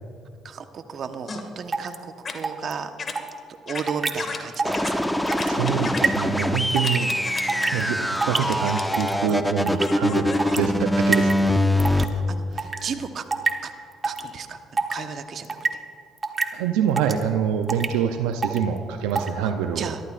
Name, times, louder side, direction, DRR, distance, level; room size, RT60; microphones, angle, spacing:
voice 1, 0.4-2.9 3.7-5.1 9.3-9.4 10.4-11.1 11.9-13.2 13.6-13.7 14.0-15.6 19.4-20.0, right 6 dB, 55° right, 7 dB, 1.1 m, -35 dB
sound 1, 1.3-1.4 2.2-2.3 3.0-3.1 3.7-3.8 4.2-4.4 4.7-4.9 5.3-6.0 6.7-7.7 8.4-9.0 9.8-10.5, left 4 dB, 45° left, 2.0 m, -33 dB
sound 2, 1.7-2.0 2.4-2.7 3.2-3.3 3.9-4.1 4.5-4.8 5.0-5.5 6.0-6.2 6.8-7.0 7.4-7.8 8.2-8.4 8.9-9.3 9.7-9.9 10.4-10.6 11.1-11.4 11.8-12.1 12.6-12.8 13.3-13.5 14.0-14.3 14.8-15.0 15.4-15.7 16.2-16.5 17.0-17.2 17.7-17.9 18.4-18.6 19.1-19.3, right 4 dB, 35° right, 1.3 m, -24 dB
sound 3, 4.6-12.0, left 1 dB, 5° left, 0.8 m, -23 dB
voice 2, 5.5-7.1 7.7-11.5 16.5-19.9, right 8 dB, 90° right, 6 dB, 0.6 m, -25 dB
23.5 x 13.5 x 2.5 m, 2.6 s
supercardioid pair, 65°, 0 cm